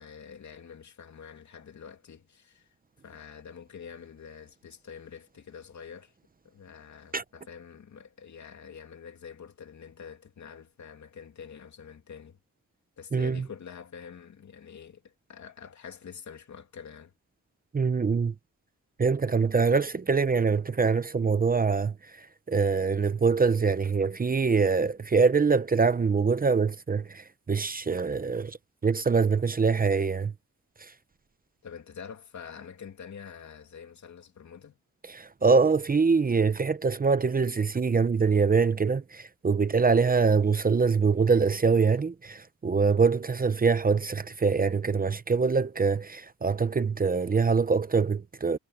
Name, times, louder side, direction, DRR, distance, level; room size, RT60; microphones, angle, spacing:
voice 1, 0.0-2.7 3.0-6.1 6.4-12.4 13.0-17.1 31.6-34.8, left 7 dB, 65° left, 2.6 m, -46 dB
voice 2, 13.1-13.4 17.7-18.3 19.0-28.6 28.8-30.3 30.8-30.9 35.1-48.6, right 5 dB, 30° right, 0.7 m, -24 dB
wide cardioid pair, 145°, 31 cm